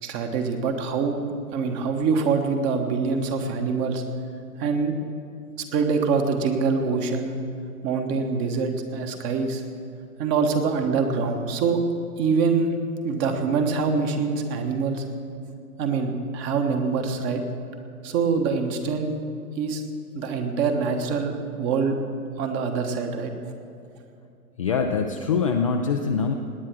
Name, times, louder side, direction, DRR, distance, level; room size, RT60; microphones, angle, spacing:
voice 1, 0.0-1.2 1.5-4.0 4.6-4.9 5.6-7.4 7.8-9.6 10.2-11.8 12.2-12.7 13.0-15.0 15.8-17.4 18.0-19.1 19.6-19.8 20.1-22.0 22.4-23.3, right 5 dB, 25° right, 6 dB, 1.2 m, -24 dB
voice 2, 24.6-26.3, left 5 dB, 25° left, 2 dB, 0.4 m, -23 dB
18.5 x 9.4 x 6.0 m, 2.6 s
figure-of-eight pair, 120°, 45 cm